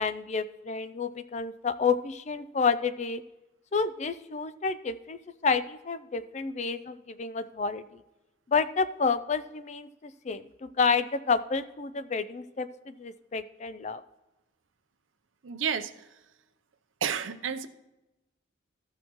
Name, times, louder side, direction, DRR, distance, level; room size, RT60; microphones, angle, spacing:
voice 1, 0.0-3.2 3.7-8.0 8.5-14.0, left 5 dB, 35° left, 13 dB, 0.4 m, -30 dB
voice 2, 15.4-16.1 17.0-17.7, right 7 dB, 85° right, 12 dB, 0.6 m, -31 dB
14.0 x 6.3 x 3.0 m, 1.0 s
head